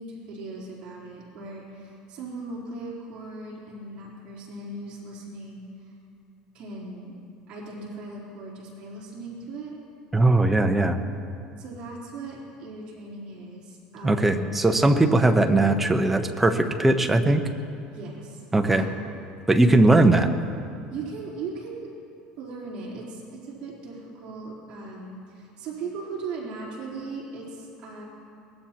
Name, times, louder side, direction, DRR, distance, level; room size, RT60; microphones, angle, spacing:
voice 1, 0.0-5.9 6.5-7.1 7.5-9.8 11.6-14.5 17.9-19.1 20.9-21.9 22.4-28.0, right 3 dB, 45° right, -6 dB, 3.7 m, -38 dB
voice 2, 10.1-11.0 14.0-17.4 18.5-18.9 19.5-20.3, right 2 dB, 5° right, 5 dB, 0.8 m, -19 dB
23.0 x 19.0 x 2.9 m, 2.5 s
cardioid pair, 155°, 2 cm